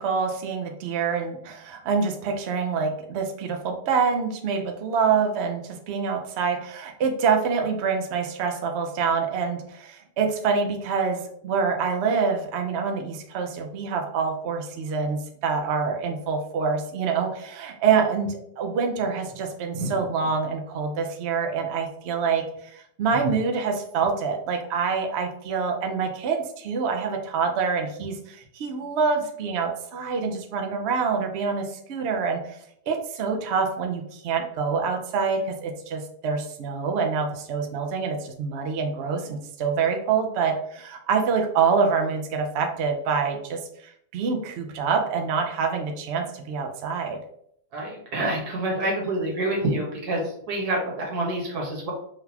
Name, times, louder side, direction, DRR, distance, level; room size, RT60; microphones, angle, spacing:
voice 1, 0.0-22.5 22.7-32.6 32.9-43.6 44.1-47.2, right 5 dB, 80° right, 3 dB, 0.5 m, -26 dB
voice 2, 19.7-20.1 47.7-51.9, right 1 dB, 65° right, -1 dB, 1.7 m, -27 dB
3.8 x 3.5 x 2.8 m, 0.70 s
omnidirectional pair, 1.9 m